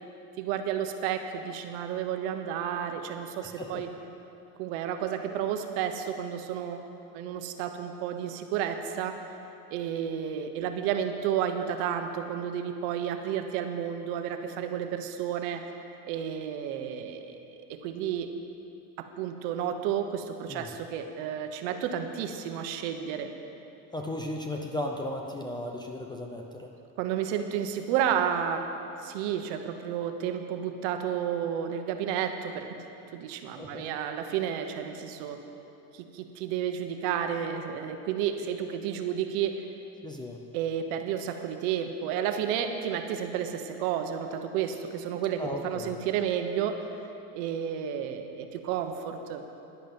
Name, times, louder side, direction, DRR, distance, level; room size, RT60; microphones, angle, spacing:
voice 1, 0.4-3.9 4.6-6.8 7.1-9.3 9.7-15.6 16.0-18.3 19.0-23.3 27.0-28.7 29.0-32.8 33.1-35.4 35.9-39.6 40.5-46.8 47.3-49.4, right 9 dB, 65° right, 6 dB, 1.2 m, -31 dB
voice 2, 23.9-26.7 33.6-33.9 40.0-40.4 45.4-45.9, left 1 dB, 10° left, 2 dB, 0.5 m, -35 dB
13.5 x 11.0 x 5.3 m, 2.8 s
supercardioid pair, 140°, 48 cm